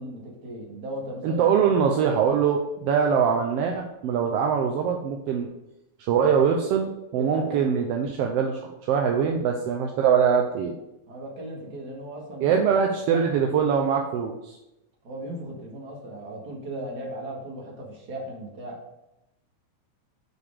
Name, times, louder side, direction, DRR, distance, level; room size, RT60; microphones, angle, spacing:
voice 1, 0.0-1.7 7.1-7.7 11.1-12.6 13.1-13.2 15.0-18.8, right 1 dB, 40° right, -2 dB, 2.1 m, -37 dB
voice 2, 1.2-5.5 6.0-8.6 8.9-10.7 12.4-14.6, right 7 dB, 75° right, 2 dB, 1.5 m, -23 dB
7.4 x 4.9 x 4.8 m, 0.90 s
omnidirectional pair, 3.3 m